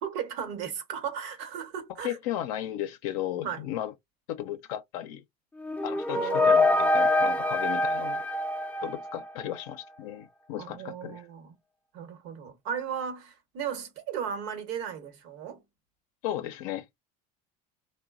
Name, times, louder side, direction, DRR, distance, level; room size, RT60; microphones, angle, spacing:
voice 1, 0.0-2.2 3.4-3.7 6.1-6.7 10.6-11.5 11.9-15.6, right 7 dB, 70° right, 1.0 m, -35 dB
voice 2, 2.0-3.9 4.3-5.2 5.8-8.2 8.8-11.2 16.2-16.9, left 12 dB, 85° left, 0.5 m, -35 dB
sound 1, 5.6-9.5, left 2 dB, 10° left, 0.4 m, -25 dB
3.1 x 2.1 x 2.4 m
supercardioid pair, 100°, 18 cm